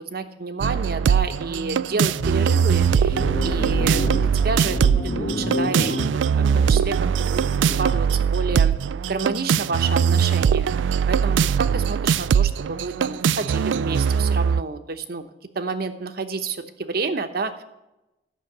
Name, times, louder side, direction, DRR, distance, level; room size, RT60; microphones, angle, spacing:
voice 1, 0.0-4.9 5.2-7.0 7.3-8.7 9.0-10.7 11.1-15.2 15.5-17.6, right 4 dB, 55° right, 9 dB, 0.9 m, -29 dB
sound 1, 0.6-14.6, right 7 dB, 80° right, 0.3 m, -21 dB
sound 2, 2.2-7.8, left 1 dB, 55° left, 1.3 m, -29 dB
13.0 x 6.4 x 7.9 m, 0.97 s
head